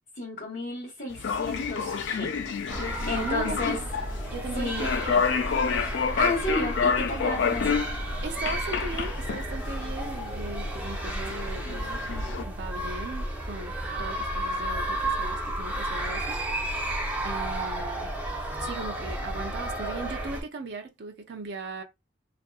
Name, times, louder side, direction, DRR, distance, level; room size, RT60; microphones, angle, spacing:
voice 1, 0.1-2.3 3.1-3.8 4.5-4.9 6.2-7.8, left 2 dB, 45° left, 1.3 m, -32 dB
sound 1, 1.1-12.4, left 6 dB, 80° left, 0.4 m, -30 dB
sound 2, 2.7-20.4, right 1 dB, 10° right, 0.6 m, -32 dB
voice 2, 3.2-5.2 7.3-7.5 8.2-11.9 12.2-17.0 17.2-18.1 18.6-21.8, right 3 dB, 65° right, 0.5 m, -38 dB
2.6 x 2.4 x 2.3 m
head